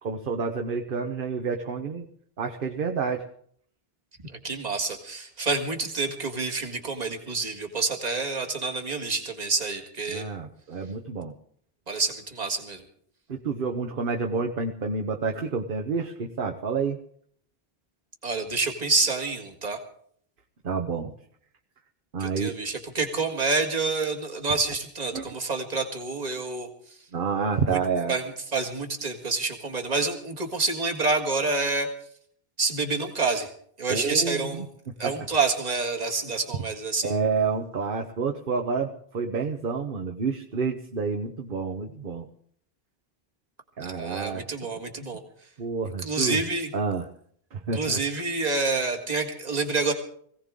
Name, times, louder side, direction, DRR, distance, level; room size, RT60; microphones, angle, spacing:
voice 1, 0.0-2.1 2.4-3.3 10.1-11.3 13.3-17.0 20.6-21.1 22.1-22.5 25.1-25.3 27.1-28.2 33.9-34.7 35.0-35.3 37.0-42.3 43.8-44.5 45.6-46.4 46.7-47.1 47.5-48.0, right 5 dB, 60° right, 4 dB, 1.1 m, -29 dB
voice 2, 4.4-10.2 11.9-12.8 18.2-19.8 22.2-26.7 27.7-27.8 28.1-31.9 32.6-33.5 33.8-34.6 35.0-37.1 43.8-45.2 46.0-46.7 47.7-49.9, right 3 dB, 40° right, 2 dB, 1.9 m, -28 dB
22.0 x 16.5 x 3.7 m, 0.62 s
omnidirectional pair, 1.0 m